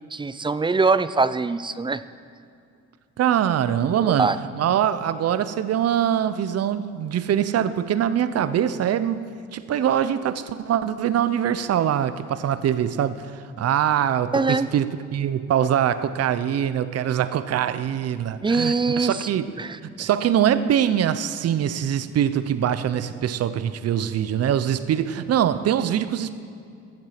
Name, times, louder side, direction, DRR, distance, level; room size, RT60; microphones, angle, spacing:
voice 1, 0.1-2.0 4.0-4.4 14.3-14.7 18.4-19.3 19.6-20.1, right 4 dB, 15° right, 0.4 m, -23 dB
voice 2, 3.2-9.2 9.5-19.5 20.0-26.3, right 9 dB, 55° right, 0.7 m, -23 dB
14.5 x 7.8 x 5.9 m
cardioid pair, 90°, 30 cm